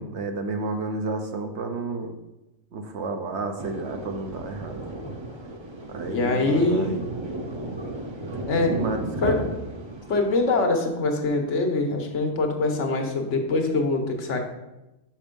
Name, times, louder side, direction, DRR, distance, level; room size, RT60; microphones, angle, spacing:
voice 1, 0.0-2.1 2.7-4.8 5.9-7.1 8.7-9.4, right 3 dB, 70° right, 5 dB, 1.0 m, -31 dB
Thunder, 3.6-10.7, right 2 dB, 30° right, 0.6 m, -34 dB
voice 2, 6.1-7.0 8.5-8.8 9.2-9.4 10.1-14.4, left 3 dB, 75° left, 3 dB, 1.3 m, -23 dB
5.3 x 5.3 x 5.2 m, 0.97 s
omnidirectional pair, 1.3 m